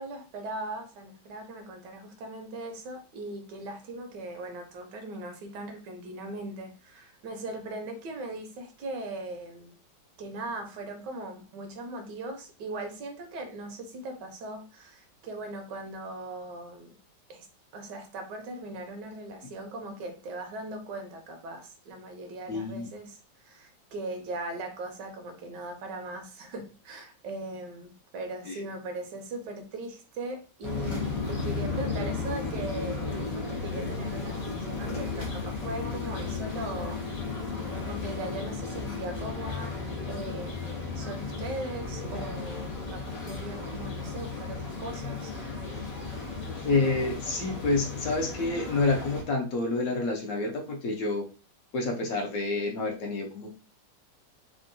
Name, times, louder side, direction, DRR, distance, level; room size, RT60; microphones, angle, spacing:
voice 1, 0.0-9.7 10.2-16.9 17.3-17.5 17.7-23.2 23.4-37.0 37.8-39.7 40.1-40.7 40.9-45.3, right 2 dB, 75° right, 5 dB, 1.3 m, -39 dB
voice 2, 22.5-22.9 28.5-28.6 46.6-51.2 51.7-53.5, left 3 dB, 65° left, 1 dB, 1.0 m, -28 dB
sound 1, 30.6-49.2, left 4 dB, 80° left, 0.3 m, -34 dB
3.5 x 2.2 x 2.6 m, 0.34 s
omnidirectional pair, 1.9 m